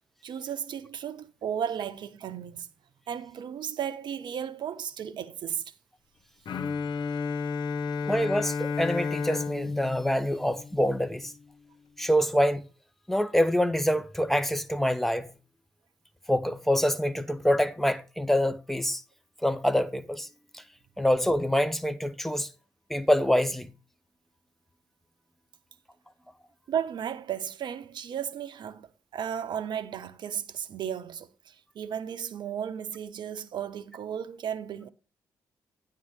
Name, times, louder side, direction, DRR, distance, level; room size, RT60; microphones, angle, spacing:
voice 1, 0.2-2.7 3.1-5.7 26.7-34.9, right 8 dB, 60° right, 0.7 m, -34 dB
Bowed string instrument, 6.5-11.3, left 5 dB, 55° left, 0.8 m, -32 dB
voice 2, 8.0-11.3 12.0-12.6 13.1-15.3 16.3-19.0 19.4-20.3 20.5-20.6 21.0-22.5 22.9-23.7, equal, 5° left, 1.0 m, -26 dB
9.4 x 3.7 x 6.4 m
hypercardioid pair, 40°, 9 cm